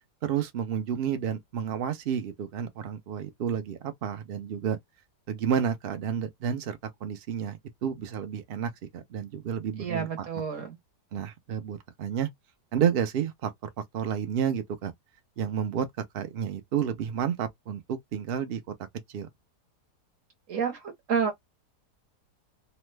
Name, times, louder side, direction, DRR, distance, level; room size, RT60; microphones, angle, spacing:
voice 1, 0.2-4.8 5.3-10.3 11.1-12.3 12.7-14.9 15.4-15.9 16.1-18.6 19.1-19.3, right 8 dB, 85° right, 0.5 m, -30 dB
voice 2, 9.8-10.8 20.5-21.5, right 6 dB, 55° right, 1.1 m, -30 dB
3.0 x 2.1 x 3.1 m
omnidirectional pair, 1.8 m